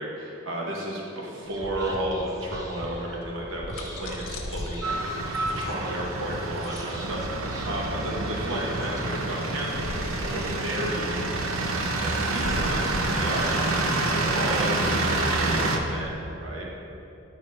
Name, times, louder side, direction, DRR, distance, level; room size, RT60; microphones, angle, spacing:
voice 1, 0.0-9.9 10.2-16.7, right 1 dB, 70° right, -2 dB, 1.0 m, -33 dB
Whispering, 1.4-16.1, equal, 15° right, 0.5 m, -41 dB
sound 1, 3.3-14.7, left 1 dB, 90° left, 0.9 m, -40 dB
sound 2, 4.8-15.8, right 2 dB, 85° right, 0.7 m, -28 dB
8.5 x 4.1 x 5.2 m, 2.8 s
head